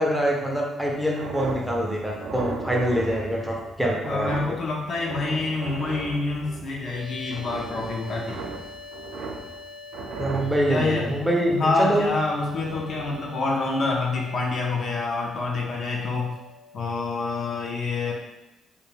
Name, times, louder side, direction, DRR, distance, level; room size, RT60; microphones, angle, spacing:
voice 1, 0.0-4.6 10.2-12.1, equal, 5° right, -1 dB, 0.5 m, -25 dB
sound 1, 0.9-7.0 7.3-9.6 9.9-13.3, right 4 dB, 75° right, 0.3 m, -37 dB
voice 2, 4.0-8.4 10.7-11.1 11.5-16.3 16.7-18.1, left 3 dB, 60° left, -2 dB, 0.5 m, -27 dB
sound 2, 6.8-16.9, left 3 dB, 90° left, 0.9 m, -44 dB
2.2 x 2.2 x 3.2 m, 0.94 s
cardioid pair, 90°, 0 cm